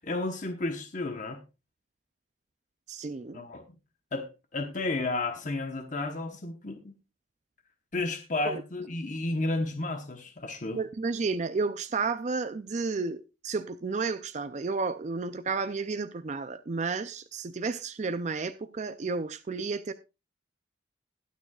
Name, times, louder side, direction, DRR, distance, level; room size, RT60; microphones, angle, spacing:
voice 1, 0.0-1.4 3.3-3.6 4.1-7.0 7.9-10.8, left 2 dB, 40° left, 1.0 m, -32 dB
voice 2, 2.9-3.4 8.4-8.6 10.7-19.9, right 4 dB, 35° right, 0.4 m, -32 dB
21.0 x 7.0 x 2.3 m
head